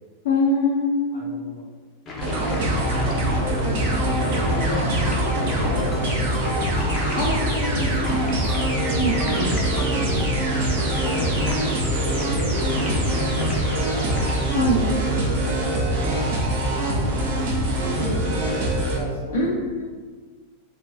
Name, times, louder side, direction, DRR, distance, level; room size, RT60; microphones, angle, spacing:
voice 1, 0.2-1.3 7.2-8.7 8.9-9.5 14.5-14.8 19.3-19.8, left 1 dB, 55° left, -6 dB, 0.8 m, -24 dB
voice 2, 1.1-1.6 3.0-7.1 7.6-8.4 9.3-10.7 11.0-14.1 14.4-17.5 17.8-19.6, left 1 dB, 80° left, -6 dB, 1.0 m, -35 dB
sound 1, 2.1-14.3, left 2 dB, 30° left, 0.7 m, -33 dB
sound 2, 2.2-19.0, right 1 dB, 55° right, 0.7 m, -23 dB
Ringtone, 5.1-5.2 5.8-6.0 6.3-6.5 6.8-6.9 7.5-7.8 8.1-8.2 8.5-8.6 9.2-9.5 9.8-9.9 10.2-10.3 10.9-11.2 11.5-11.6, left 2 dB, 10° left, 0.3 m, -40 dB
3.4 x 2.3 x 3.8 m, 1.4 s
figure-of-eight pair, 90°, 0 cm